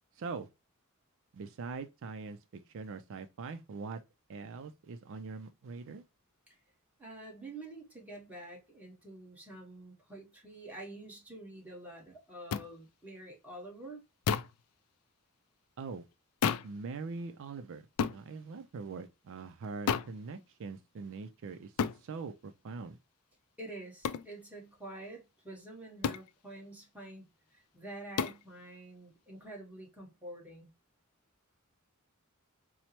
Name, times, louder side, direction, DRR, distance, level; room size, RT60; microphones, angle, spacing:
voice 1, 0.1-0.5 1.3-4.0 4.3-6.0 15.8-16.0 16.6-17.9 18.1-23.0, right 4 dB, 60° right, 0.4 m, -42 dB
voice 2, 7.0-14.0 23.6-30.7, right 1 dB, 5° right, 1.2 m, -47 dB
sound 1, 12.5-12.7 14.3-14.6 16.4-16.8 18.0-18.2 19.9-20.2 21.8-22.0 24.0-24.3 26.0-26.3 28.2-28.4, left 7 dB, 75° left, 0.3 m, -31 dB
4.4 x 2.1 x 2.8 m
head